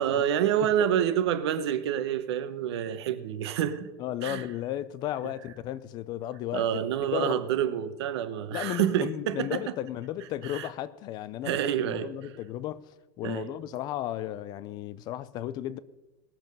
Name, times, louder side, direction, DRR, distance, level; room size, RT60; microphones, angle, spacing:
voice 1, 0.0-3.9 4.2-4.4 6.5-9.6 10.4-10.7 11.4-12.1 13.2-13.5, right 10 dB, 80° right, 1.1 m, -28 dB
voice 2, 4.0-6.7 7.1-7.4 8.5-15.8, left 13 dB, 30° left, 0.4 m, -34 dB
19.0 x 7.1 x 5.4 m
supercardioid pair, 160°, 14 cm